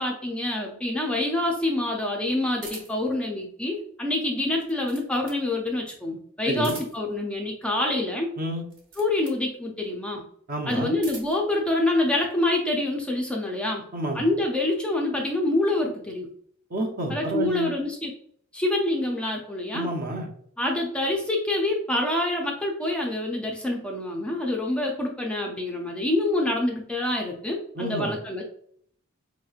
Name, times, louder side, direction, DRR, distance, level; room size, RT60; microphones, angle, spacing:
voice 1, 0.0-8.3 9.0-10.2 10.7-13.9 14.1-16.3 17.1-18.1 18.5-19.9 20.6-28.4, left 1 dB, 5° left, -1 dB, 0.4 m, -26 dB
sound 1, 2.6-3.1 4.4-5.5 6.5-7.2 8.6-9.4 10.7-11.5, right 3 dB, 60° right, 1.2 m, -43 dB
voice 2, 10.5-10.9 13.9-14.2 16.7-17.7 19.7-20.3 27.8-28.2, right 1 dB, 40° right, 3 dB, 0.6 m, -29 dB
4.7 x 2.9 x 2.3 m, 0.64 s
head